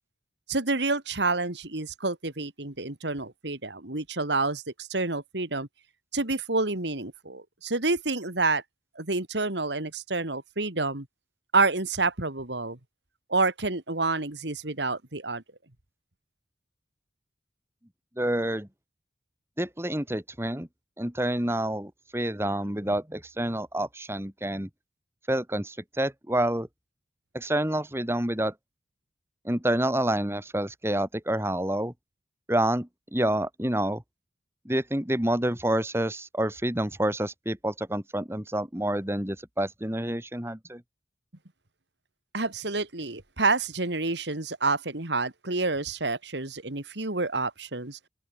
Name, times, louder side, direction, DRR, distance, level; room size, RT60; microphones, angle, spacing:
voice 1, 0.5-5.7 6.1-8.6 9.0-11.1 11.5-12.8 13.3-15.4 42.3-48.0, right 3 dB, 75° right, 2.6 m, -28 dB
voice 2, 18.2-18.7 19.6-20.7 21.0-24.7 25.3-26.7 27.3-28.5 29.4-31.9 32.5-34.0 34.7-40.8, right 1 dB, 15° right, 2.4 m, -28 dB
open air
head